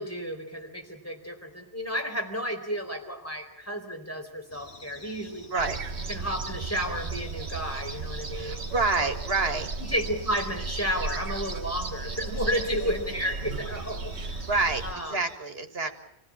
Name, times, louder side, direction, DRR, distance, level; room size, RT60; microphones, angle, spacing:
voice 1, 0.0-5.5 6.1-9.1 9.8-14.5 14.8-15.2 15.8-15.9, equal, 15° left, 3 dB, 4.3 m, -32 dB
sound 1, 4.5-15.4, left 2 dB, 90° left, 3.6 m, -50 dB
sound 2, 5.6-14.9, right 3 dB, 90° right, 1.6 m, -35 dB
voice 2, 8.3-9.7 14.5-15.9, right 3 dB, 65° right, 7 dB, 2.2 m, -27 dB
28.0 x 16.5 x 8.8 m, 0.78 s
omnidirectional pair, 1.1 m